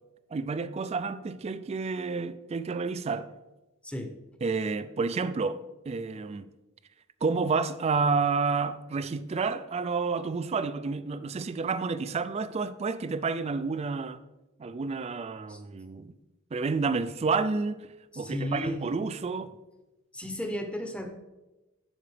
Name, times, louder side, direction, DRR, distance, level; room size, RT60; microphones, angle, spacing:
voice 1, 0.3-3.3 4.4-6.5 7.2-14.2 14.6-16.2 16.5-17.9 18.2-19.6, right 4 dB, 30° right, 0.3 m, -30 dB
voice 2, 18.1-18.8 20.1-21.1, left 1 dB, 5° left, 0.8 m, -34 dB
12.5 x 5.0 x 3.3 m
head